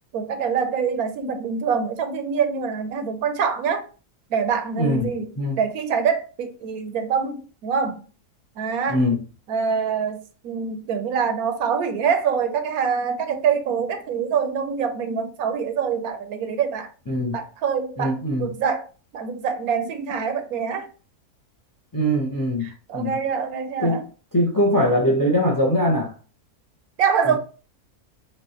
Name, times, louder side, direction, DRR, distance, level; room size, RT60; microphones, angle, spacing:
voice 1, 0.1-3.8 4.3-5.3 5.6-8.0 8.6-9.0 9.5-16.9 17.3-18.8 19.1-20.9 22.6-24.0 27.0-27.4, right 6 dB, 75° right, 1.1 m, -25 dB
voice 2, 4.8-5.6 8.9-9.2 17.1-17.4 18.0-18.5 21.9-23.2 23.8-24.0 24.3-26.1, equal, 20° left, 0.5 m, -22 dB
6.2 x 2.5 x 2.9 m
omnidirectional pair, 1.6 m